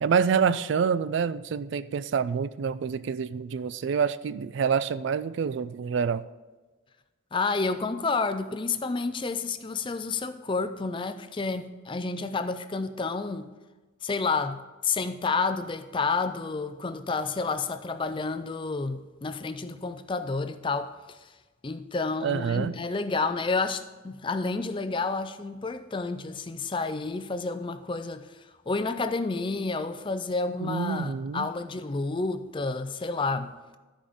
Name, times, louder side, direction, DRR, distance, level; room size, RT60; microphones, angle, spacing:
voice 1, 0.0-6.2 22.2-22.7 30.6-31.5, right 6 dB, 60° right, 0.3 m, -27 dB
voice 2, 7.3-13.5 14.0-21.3 21.6-33.5, left 4 dB, 25° left, 0.4 m, -30 dB
13.0 x 5.1 x 5.1 m
head